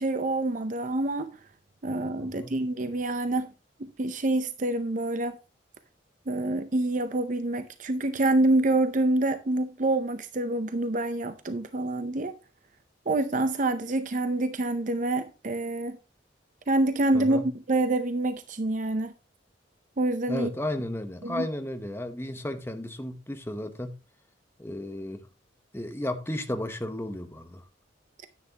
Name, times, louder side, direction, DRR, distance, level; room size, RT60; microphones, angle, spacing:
voice 1, 0.0-1.3 1.8-3.5 3.8-5.4 6.3-12.3 13.1-16.0 16.7-19.1 20.0-20.5 21.2-21.5, right 2 dB, 40° right, 0.6 m, -27 dB
voice 2, 2.2-2.6 17.1-17.5 20.3-23.9 24.6-25.3 25.7-27.6, left 1 dB, 15° left, 0.9 m, -34 dB
10.0 x 9.5 x 2.9 m
head